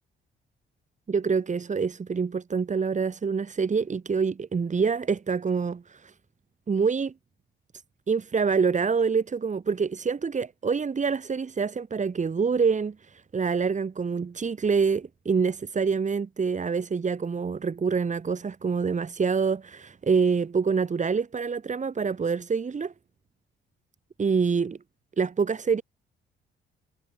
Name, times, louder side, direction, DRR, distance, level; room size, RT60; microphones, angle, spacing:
voice 1, 1.1-6.1 6.7-7.1 8.1-13.0 13.3-22.9 24.2-24.8 25.2-25.8, right 5 dB, 35° right, 7.5 m, -26 dB
cardioid pair, 90°, 20 cm